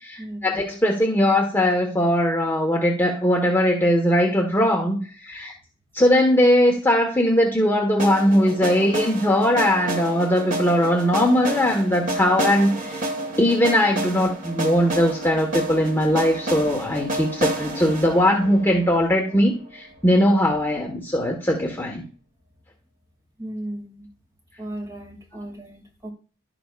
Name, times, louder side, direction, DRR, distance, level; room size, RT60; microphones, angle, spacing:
voice 1, 0.0-5.5 5.9-13.0 13.4-22.0, equal, 10° left, 1.5 m, -20 dB
sound 1, 8.0-19.9, right 1 dB, 40° right, 1.9 m, -30 dB
voice 2, 23.4-24.1 24.6-26.1, right 1 dB, 15° right, 2.5 m, -35 dB
12.0 x 9.9 x 2.5 m
head